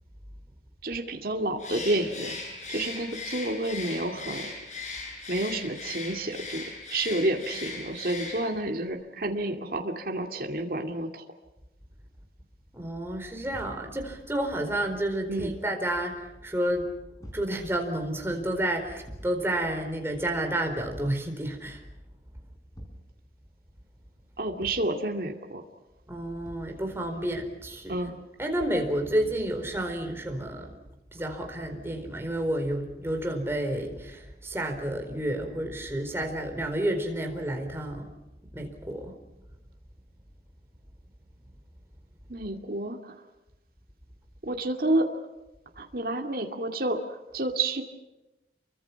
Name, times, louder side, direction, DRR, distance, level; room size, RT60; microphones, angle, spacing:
voice 1, 0.8-2.4 2.7-4.5 5.3-11.2 15.3-15.5 24.4-25.6 27.9-28.2 42.3-43.2 44.4-45.1 45.8-47.8, right 1 dB, 55° right, 2 dB, 2.4 m, -30 dB
Bird, 1.6-8.7, left 3 dB, 40° left, 7.7 m, -38 dB
voice 2, 12.7-16.9 17.3-21.8 26.1-28.1 28.4-30.8 31.1-38.1 38.5-39.1, right 1 dB, 15° right, 3 dB, 4.3 m, -30 dB
Thump thud, 13.5-13.9 15.3-15.7 17.2-17.5 19.0-19.4 20.9-21.2 22.7-23.1 24.6-24.9 26.4-26.8, equal, 20° left, 5.2 m, -44 dB
29.0 x 24.0 x 5.9 m, 0.99 s
head